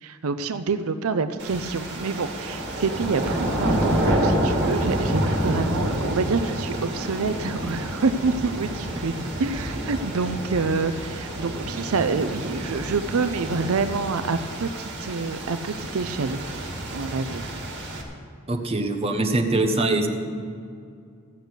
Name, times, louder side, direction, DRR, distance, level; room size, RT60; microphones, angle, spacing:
voice 1, 0.0-17.5, right 4 dB, 85° right, 11 dB, 0.5 m, -27 dB
sound 1, 1.4-18.0, right 1 dB, 55° right, 2.2 m, -28 dB
voice 2, 18.5-20.1, right 2 dB, 30° right, 3 dB, 1.2 m, -23 dB
15.5 x 6.7 x 8.1 m, 2.3 s
head